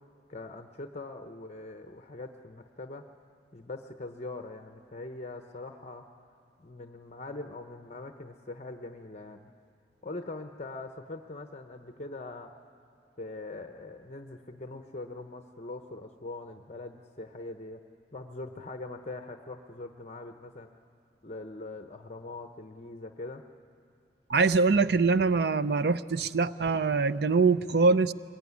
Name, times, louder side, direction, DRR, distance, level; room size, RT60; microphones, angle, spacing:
voice 1, 0.3-3.1 3.5-6.1 6.6-9.5 10.0-12.5 13.2-17.8 18.1-20.7 21.2-23.4, left 2 dB, 35° left, 6 dB, 0.9 m, -42 dB
voice 2, 24.3-28.1, right 4 dB, 60° right, 15 dB, 0.5 m, -24 dB
23.5 x 21.5 x 9.6 m, 2.4 s
head